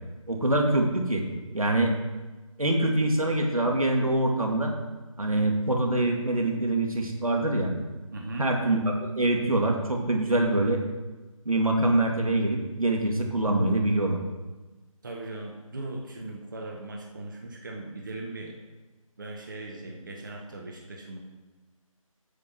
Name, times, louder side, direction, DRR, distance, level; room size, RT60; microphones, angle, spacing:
voice 1, 0.3-1.2 1.5-1.9 2.6-4.7 5.2-7.7 8.4-10.8 11.5-14.2, right 1 dB, 75° right, 1 dB, 2.3 m, -24 dB
voice 2, 8.1-8.5 15.0-18.5 19.2-21.2, right 2 dB, 35° right, 1 dB, 1.2 m, -38 dB
8.6 x 7.4 x 6.2 m, 1.2 s
figure-of-eight pair, 160°, 18 cm